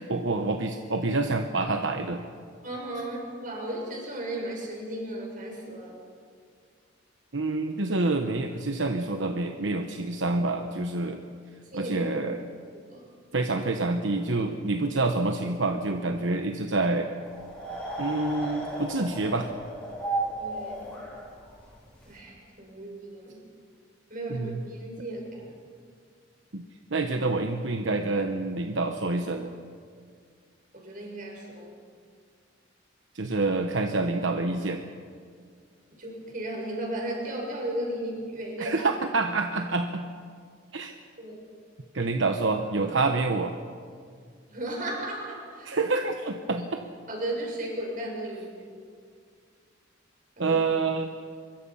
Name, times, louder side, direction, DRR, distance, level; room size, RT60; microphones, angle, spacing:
voice 1, 0.0-2.2 7.3-11.2 11.7-12.4 13.3-17.1 18.0-19.5 24.3-24.6 26.5-26.6 26.9-29.5 33.1-34.8 38.6-40.0 40.7-40.9 41.9-43.5 45.6-46.8 50.4-51.1, right 3 dB, 70° right, 5 dB, 1.1 m, -27 dB
voice 2, 2.6-5.9 11.7-12.2 12.7-13.1 20.4-20.9 22.1-23.4 24.1-25.6 30.7-31.7 36.0-38.8 41.2-41.4 44.5-45.7 47.1-48.8 50.4-50.6, right 1 dB, 45° right, 0 dB, 6.2 m, -35 dB
sound 1, 17.2-22.1, right 2 dB, 10° left, 7.2 m, -34 dB
25.0 x 22.5 x 5.7 m, 2.1 s
head